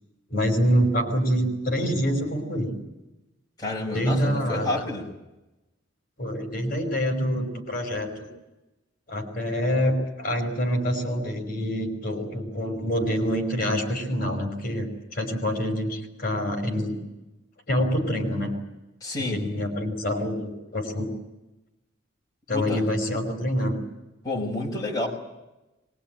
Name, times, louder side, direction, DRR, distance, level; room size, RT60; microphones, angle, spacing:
voice 1, 0.3-2.7 3.9-4.7 6.2-8.3 9.1-17.0 17.7-18.5 19.3-21.1 22.5-23.8, equal, 45° left, 3 dB, 5.5 m, -26 dB
voice 2, 3.6-5.0 19.0-19.4 22.5-22.8 24.2-25.1, left 2 dB, 20° left, -2 dB, 5.5 m, -29 dB
23.5 x 22.5 x 9.2 m, 0.99 s
head